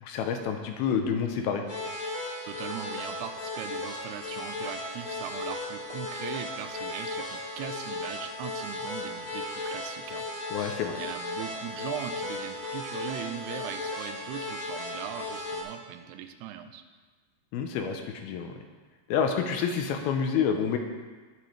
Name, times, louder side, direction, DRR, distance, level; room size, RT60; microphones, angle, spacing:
voice 1, 0.0-1.6 10.5-11.0 17.5-18.6 19.1-20.8, left 7 dB, 80° left, 5 dB, 2.5 m, -28 dB
sound 1, 1.7-15.6, left 2 dB, 25° left, 2.5 m, -36 dB
voice 2, 2.5-10.6 10.9-16.8, right 10 dB, 85° right, 8 dB, 2.6 m, -40 dB
19.0 x 6.9 x 3.3 m, 1.4 s
omnidirectional pair, 4.7 m